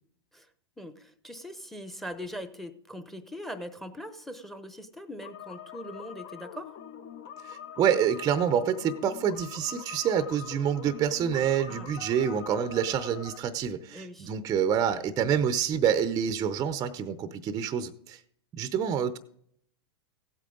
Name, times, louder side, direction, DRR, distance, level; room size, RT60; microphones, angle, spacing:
voice 1, 0.8-6.8 11.7-11.9 13.9-14.3, equal, ahead, 11 dB, 0.9 m, -41 dB
sound 1, 5.2-13.4, left 8 dB, 45° left, 0.9 m, -44 dB
voice 2, 7.5-18.2 18.5-19.2, right 8 dB, 25° right, 11 dB, 0.6 m, -27 dB
16.0 x 8.4 x 3.9 m, 0.67 s
hypercardioid pair, 115°, 15 cm